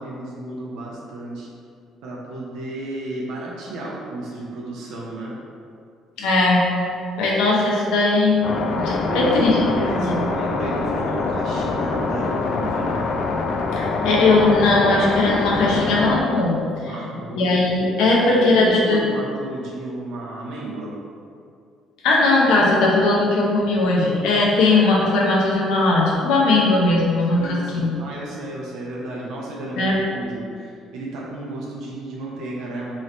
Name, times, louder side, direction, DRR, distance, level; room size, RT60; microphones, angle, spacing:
voice 1, 0.0-1.5 2.0-5.4 9.1-13.0 16.8-17.6 18.3-20.9 27.4-32.9, right 1 dB, 75° right, -4 dB, 0.6 m, -32 dB
voice 2, 6.2-6.7 7.2-8.5 8.7-9.6 9.9-10.3 13.8-16.6 16.8-16.9 17.3-19.0 22.0-27.9 29.8-30.0, left 2 dB, 80° left, -4 dB, 0.8 m, -18 dB
sound 1, 8.4-16.2, left 3 dB, 65° left, 0.3 m, -24 dB
3.1 x 2.5 x 4.2 m, 2.4 s
supercardioid pair, 75°, 0 cm